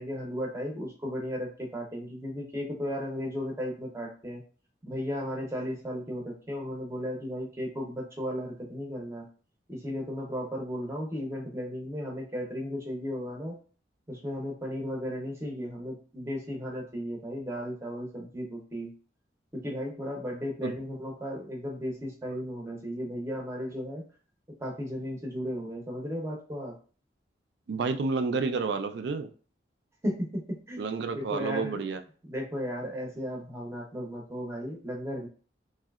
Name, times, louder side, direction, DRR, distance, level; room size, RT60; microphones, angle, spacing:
voice 1, 0.0-4.4 4.8-9.3 9.7-13.6 14.1-18.9 19.5-24.0 24.6-26.7 30.0-30.8 31.1-31.8 32.3-35.3, equal, 15° right, -1 dB, 0.6 m, -35 dB
voice 2, 27.7-29.3 30.8-32.0, right 4 dB, 70° right, 9 dB, 0.3 m, -30 dB
3.1 x 2.7 x 2.3 m, 0.40 s
head